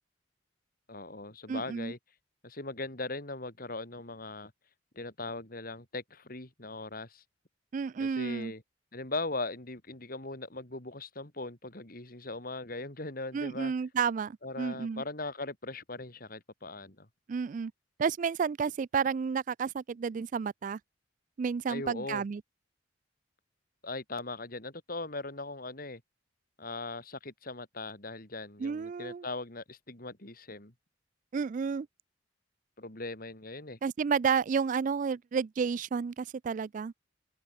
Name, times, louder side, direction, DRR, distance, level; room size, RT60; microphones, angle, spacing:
voice 1, 0.9-2.0 2.4-4.5 5.0-7.2 8.0-8.6 8.9-13.7 14.4-17.1 21.7-22.2 23.8-26.0 26.6-30.7 32.8-33.8, left 2 dB, 50° left, 3.6 m, -39 dB
voice 2, 1.5-1.9 7.7-8.5 13.3-15.0 17.3-17.7 18.0-20.8 21.4-22.4 28.6-29.3 31.3-31.9 33.8-36.9, right 6 dB, 45° right, 0.3 m, -31 dB
open air
head